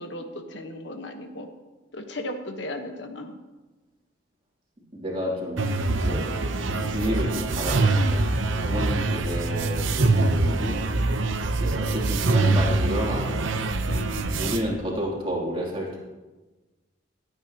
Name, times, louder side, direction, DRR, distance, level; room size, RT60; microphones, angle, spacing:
voice 1, 0.0-1.5 1.9-3.3 6.7-7.0 8.5-8.9 13.9-14.3, left 1 dB, 70° left, 5 dB, 1.2 m, -36 dB
voice 2, 4.9-6.3 6.9-8.3 8.7-10.8 11.6-13.6 14.4-16.0, equal, 30° right, -3 dB, 3.0 m, -30 dB
sound 1, 5.6-14.6, right 2 dB, 90° right, 0.9 m, -24 dB
27.0 x 9.0 x 3.0 m, 1.2 s
head